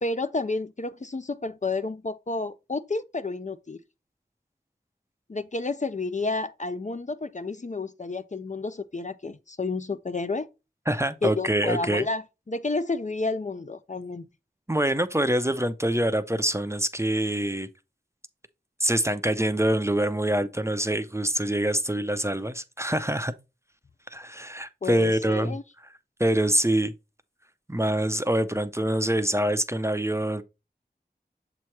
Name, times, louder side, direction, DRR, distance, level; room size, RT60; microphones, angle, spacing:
voice 1, 0.0-3.8 5.3-10.5 11.2-14.3 24.8-25.6, left 3 dB, 45° left, 0.5 m, -30 dB
voice 2, 10.9-12.1 14.7-17.7 18.8-23.3 24.1-25.5 26.2-26.9 27.7-30.4, right 1 dB, 15° right, 0.5 m, -25 dB
7.2 x 3.0 x 4.5 m
wide cardioid pair, 45°, 17 cm